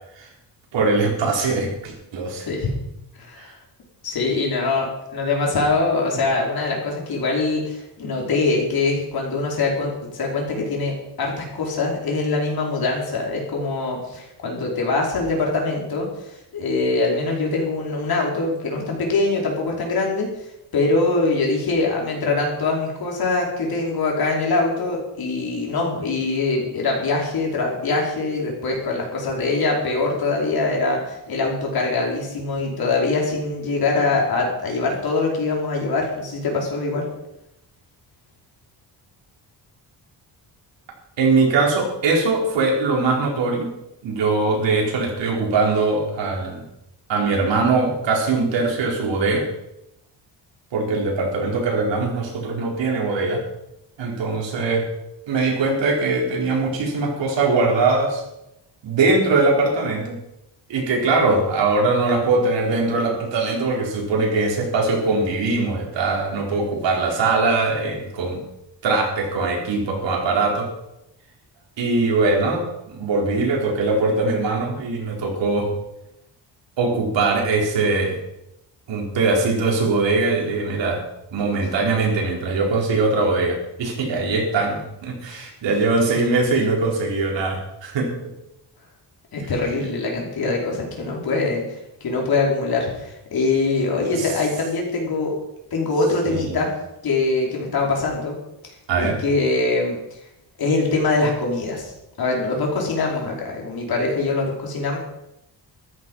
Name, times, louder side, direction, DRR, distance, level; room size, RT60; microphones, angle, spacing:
voice 1, 0.7-2.5 41.2-43.7 44.0-46.6 47.1-49.5 50.7-53.4 54.0-54.9 55.3-58.2 58.8-60.2 60.7-68.4 68.8-70.7 71.8-75.7 76.8-78.2 78.9-81.0 81.3-88.1 94.1-94.3 96.3-96.6 98.9-99.2, right 3 dB, 80° right, -1 dB, 4.7 m, -21 dB
voice 2, 3.2-3.6 4.0-20.3 20.7-37.1 85.3-85.4 89.3-95.3 95.7-96.7 97.0-98.3 98.6-100.0 100.6-101.9 102.2-105.0, left 3 dB, 55° left, -1 dB, 5.1 m, -23 dB
14.0 x 13.0 x 5.6 m, 0.86 s
cardioid pair, 150°, 43 cm